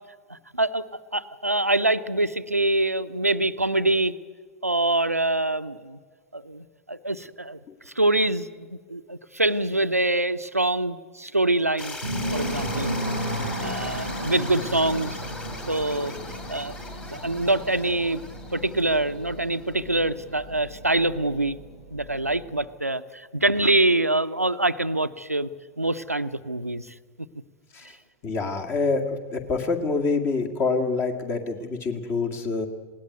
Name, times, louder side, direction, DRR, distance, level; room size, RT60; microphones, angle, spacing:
voice 1, 0.3-0.8 1.1-4.1 4.6-6.0 6.3-7.6 7.9-12.0 12.3-12.9 13.6-15.2 15.7-16.1 16.5-16.7 17.1-18.2 18.5-21.6 21.9-25.5 25.8-26.9, right 2 dB, 90° right, 10 dB, 0.7 m, -25 dB
sound 1, 11.8-19.8, left 3 dB, 15° left, 2.6 m, -40 dB
sound 2, 12.0-22.6, equal, 90° left, 4.5 m, -34 dB
voice 2, 28.2-32.7, left 4 dB, 30° left, 4 dB, 2.1 m, -26 dB
20.0 x 17.5 x 9.3 m, 1.5 s
figure-of-eight pair, 95°, 8 cm